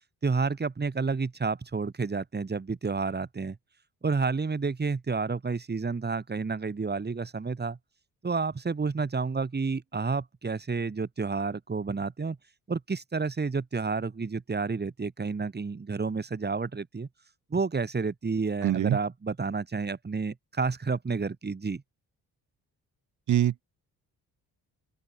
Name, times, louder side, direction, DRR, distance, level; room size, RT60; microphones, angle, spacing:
voice 1, 0.2-3.6 4.0-7.8 8.2-12.4 12.7-17.1 17.5-21.8, right 4 dB, 25° right, 2.3 m, -30 dB
voice 2, 18.6-19.0 23.3-23.6, right 11 dB, 55° right, 0.8 m, -24 dB
open air
cardioid pair, 85°, 36 cm